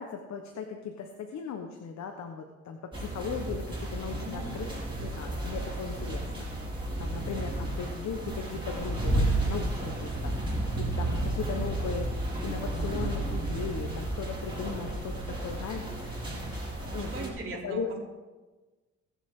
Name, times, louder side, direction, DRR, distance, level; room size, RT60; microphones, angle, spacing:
voice 1, 0.0-4.6 5.0-6.5 7.0-12.1 12.4-16.2 16.9-17.1 17.5-17.9, left 6 dB, 65° left, 4 dB, 1.2 m, -38 dB
sound 1, 2.9-17.3, right 1 dB, 15° right, 4.4 m, -32 dB
voice 2, 4.2-4.5 16.9-17.8, right 3 dB, 45° right, -4 dB, 3.3 m, -39 dB
21.5 x 7.4 x 3.7 m, 1.2 s
cardioid pair, 90°, 30 cm